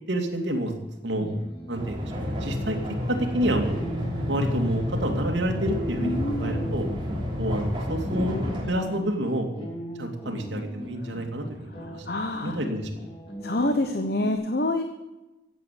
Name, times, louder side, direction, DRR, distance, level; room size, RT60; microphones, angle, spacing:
voice 1, 0.1-0.7 1.0-1.3 1.7-2.8 3.1-3.8 4.3-6.9 7.4-8.4 8.7-9.7 10.0-12.1 12.4-13.2, right 1 dB, 75° right, 3 dB, 2.6 m, -29 dB
sound 1, 0.9-14.3, right 1 dB, 30° left, 2.6 m, -39 dB
sound 2, 1.7-8.6, left 1 dB, 25° right, 3.2 m, -30 dB
voice 2, 6.0-6.6 11.8-12.6 13.4-14.8, left 1 dB, 55° left, 6 dB, 1.1 m, -27 dB
15.5 x 8.6 x 8.4 m, 1.0 s
head